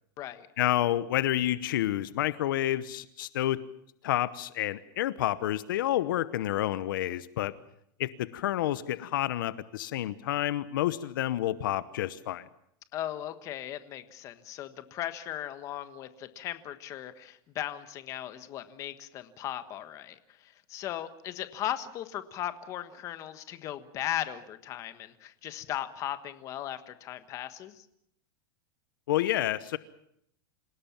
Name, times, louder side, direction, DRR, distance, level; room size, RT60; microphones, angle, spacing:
voice 1, 0.6-3.6 4.0-7.5 8.0-12.4 29.1-29.8, left 13 dB, 70° left, 15 dB, 0.9 m, -29 dB
voice 2, 12.9-27.9, left 12 dB, 30° left, 11 dB, 1.4 m, -37 dB
27.0 x 17.5 x 7.3 m, 0.73 s
supercardioid pair, 165°, 11 cm